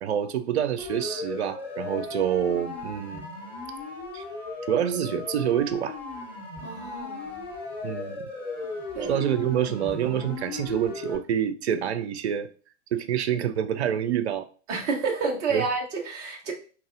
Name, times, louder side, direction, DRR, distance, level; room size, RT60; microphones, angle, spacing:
voice 1, 0.0-3.3 4.1-4.2 4.7-6.0 7.8-8.2 9.1-12.5 12.9-14.5 15.5-15.6, right 9 dB, 60° right, 0.6 m, -27 dB
Siren, 0.8-11.2, left 3 dB, 20° left, 2.0 m, -37 dB
voice 2, 6.6-7.4 8.9-9.2 14.7-16.5, right 4 dB, 10° right, 0.3 m, -29 dB
5.4 x 2.8 x 2.5 m
figure-of-eight pair, 105°, 36 cm